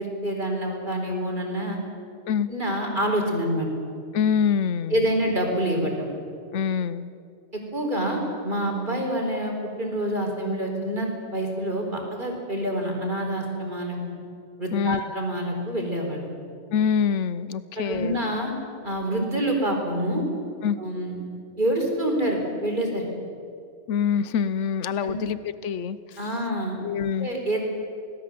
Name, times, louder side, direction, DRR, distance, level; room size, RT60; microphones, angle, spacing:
voice 1, 0.0-1.8 2.5-3.7 4.9-5.9 7.7-14.0 14.6-16.3 17.8-18.5 18.8-20.2 20.8-21.1 21.6-23.1 25.0-25.2 26.2-26.8 27.2-27.6, right 1 dB, 45° right, 1 dB, 4.6 m, -27 dB
voice 2, 4.1-5.1 6.5-7.1 14.7-15.0 16.7-18.2 20.6-20.8 23.9-26.2 26.8-27.3, left 7 dB, 80° left, 15 dB, 1.1 m, -25 dB
27.5 x 19.0 x 7.7 m, 2.4 s
omnidirectional pair, 1.2 m